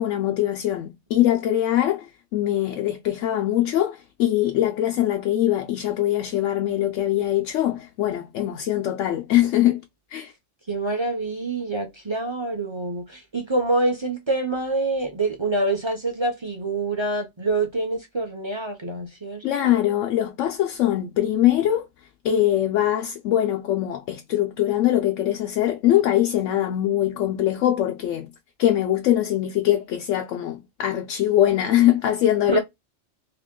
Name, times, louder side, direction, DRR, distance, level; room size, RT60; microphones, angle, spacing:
voice 1, 0.0-9.8 10.1-10.3 19.4-21.9 22.2-28.3 28.6-32.6, left 12 dB, 80° left, 0.9 m, -22 dB
voice 2, 10.7-19.7 32.5-32.6, right 2 dB, 30° right, 0.6 m, -26 dB
2.9 x 2.9 x 3.6 m
omnidirectional pair, 1.3 m